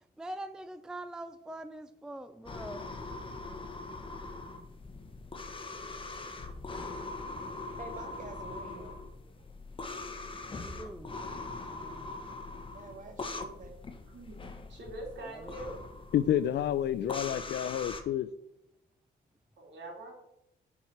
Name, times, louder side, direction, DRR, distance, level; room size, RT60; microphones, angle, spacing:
voice 1, 0.0-2.9 10.5-12.1 15.2-15.5, right 1 dB, 5° right, 0.4 m, -44 dB
sound 1, 2.5-18.0, left 3 dB, 25° left, 1.1 m, -42 dB
voice 2, 7.8-9.0 12.7-13.8, right 3 dB, 40° right, 0.9 m, -47 dB
voice 3, 14.1-14.4 14.7-15.8 19.6-20.1, right 1 dB, 65° right, 2.9 m, -43 dB
voice 4, 16.1-18.3, left 10 dB, 60° left, 0.4 m, -29 dB
7.0 x 4.7 x 5.9 m
cardioid pair, 90°, 20 cm